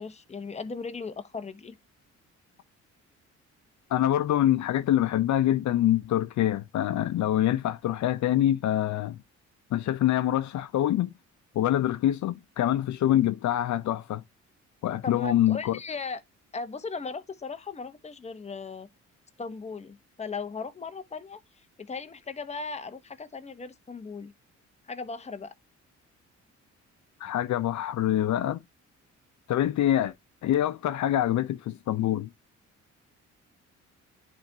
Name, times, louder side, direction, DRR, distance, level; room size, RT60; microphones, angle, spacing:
voice 1, 0.0-1.7 15.0-16.2 16.5-18.9 19.4-21.4 21.8-24.3 24.9-25.5, left 4 dB, 20° left, 0.9 m, -37 dB
voice 2, 3.9-9.2 9.7-11.1 11.6-14.2 14.8-15.8 27.2-28.6 29.5-30.1 30.4-32.3, left 12 dB, 70° left, 0.7 m, -25 dB
10.5 x 3.5 x 2.7 m
cardioid pair, 90°, 30 cm